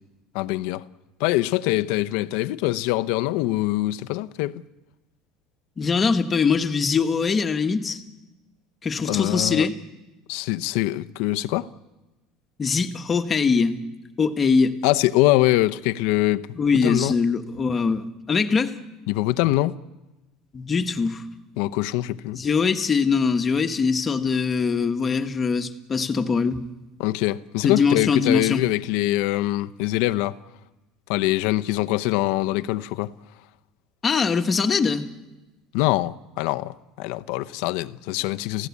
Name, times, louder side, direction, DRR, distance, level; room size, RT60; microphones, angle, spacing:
voice 1, 0.3-0.8 1.2-4.6 9.1-9.7 10.3-11.7 14.8-16.5 16.8-17.1 19.1-19.7 21.6-22.4 27.0-30.4 31.1-33.1 35.7-38.7, left 17 dB, 70° left, 0.7 m, -23 dB
voice 2, 5.8-8.0 8.8-9.8 12.6-13.8 14.2-14.8 16.6-18.7 20.5-21.2 22.3-26.6 27.6-28.6 34.0-35.1, left 5 dB, 20° left, 1.2 m, -22 dB
29.5 x 16.0 x 8.4 m
cardioid pair, 150°, 0 cm